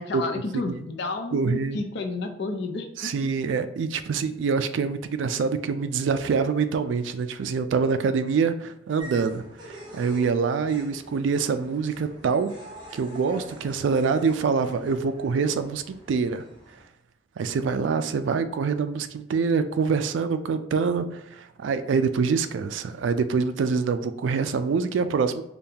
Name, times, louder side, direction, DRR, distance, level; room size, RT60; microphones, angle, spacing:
voice 1, 0.0-3.1, left 3 dB, 65° left, 5 dB, 0.5 m, -31 dB
voice 2, 1.3-1.8 3.0-12.5 12.9-16.4 17.4-25.4, right 5 dB, 75° right, 11 dB, 0.3 m, -25 dB
sound 1, 9.0-16.8, equal, 25° right, 1.0 m, -45 dB
5.2 x 2.3 x 2.8 m, 0.82 s
head